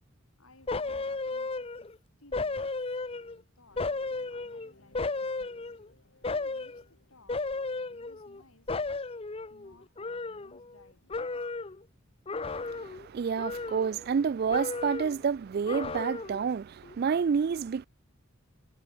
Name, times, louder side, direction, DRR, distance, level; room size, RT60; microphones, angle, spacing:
voice 1, 0.4-4.0 4.3-5.8 6.2-9.0 9.5-11.5, left 2 dB, 85° left, 8.0 m, -61 dB
sound 1, 0.7-2.0 2.3-3.4 3.8-5.9 6.2-6.8 7.3-8.4 8.7-10.8 11.1-11.8 12.3-13.1 13.4-14.2 14.5-15.2 15.7-16.5 16.8-16.9, left 3 dB, 25° left, 0.6 m, -34 dB
sound 2, 3.7-9.2, left 2 dB, 60° left, 2.8 m, -63 dB
voice 2, 12.4-17.9, right 6 dB, 45° right, 0.3 m, -29 dB
head